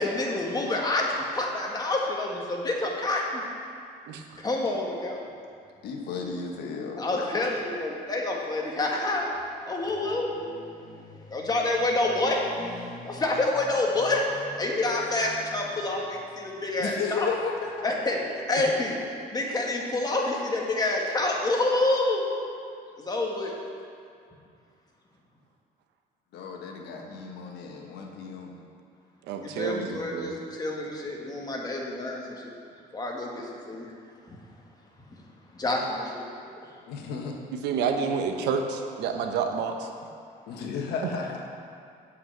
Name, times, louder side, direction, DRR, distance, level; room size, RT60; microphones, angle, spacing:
voice 1, 0.0-3.4 4.4-5.2 7.0-9.3 9.7-17.3 17.8-19.0 19.3-22.2 23.0-23.5 29.4-32.4 32.9-33.9 35.5-36.3, left 2 dB, 25° left, -1 dB, 1.6 m, -28 dB
voice 2, 4.1-4.4 29.2-30.4 37.6-39.9, right 5 dB, 85° right, 5 dB, 0.9 m, -29 dB
voice 3, 5.8-7.3 16.8-17.8 19.3-19.4 26.3-28.5 36.9-37.4 40.5-41.4, left 5 dB, 80° left, 1 dB, 1.3 m, -34 dB
8.1 x 5.7 x 7.6 m, 2.3 s
cardioid pair, 110°, 17 cm